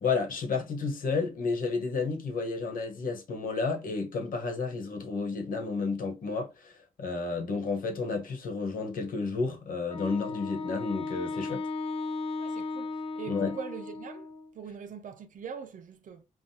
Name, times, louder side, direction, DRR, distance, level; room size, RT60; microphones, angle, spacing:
voice 1, 0.0-6.7 7.0-11.6 13.3-13.6, left 4 dB, 80° left, 1.3 m, -31 dB
Wind instrument woodwind instrument, 9.9-14.5, left 3 dB, 45° left, 0.5 m, -35 dB
voice 2, 12.4-14.3 14.5-16.2, right 7 dB, 70° right, 0.7 m, -42 dB
5.8 x 2.4 x 2.8 m
wide cardioid pair, 130°, 14 cm